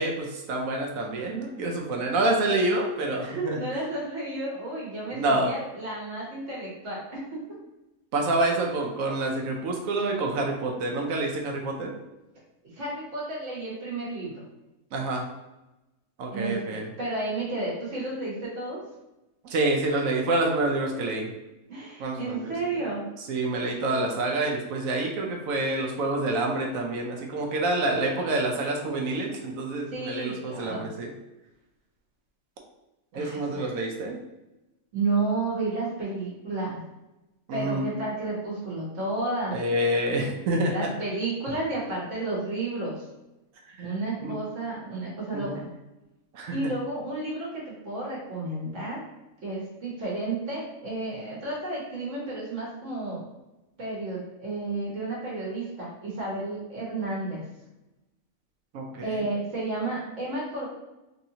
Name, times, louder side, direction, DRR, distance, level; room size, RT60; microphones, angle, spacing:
voice 1, 0.0-3.8 5.1-5.5 8.1-11.9 14.9-15.2 16.2-16.9 19.4-21.3 22.0-22.5 23.3-31.1 33.1-34.2 37.5-37.9 39.5-40.9 43.7-43.9 44.2-44.4 45.3-45.6 46.3-46.7 58.7-59.3, right 2 dB, 80° right, 0 dB, 1.0 m, -27 dB
voice 2, 3.2-7.4 12.7-14.4 16.3-18.8 21.7-23.0 29.9-30.9 33.1-33.7 34.9-36.8 37.5-39.6 40.7-43.0 43.8-45.5 46.5-49.0 49.4-53.2 53.8-57.4 59.0-60.7, right 2 dB, 65° right, -5 dB, 1.2 m, -32 dB
3.1 x 2.8 x 2.7 m, 0.98 s
omnidirectional pair, 1.4 m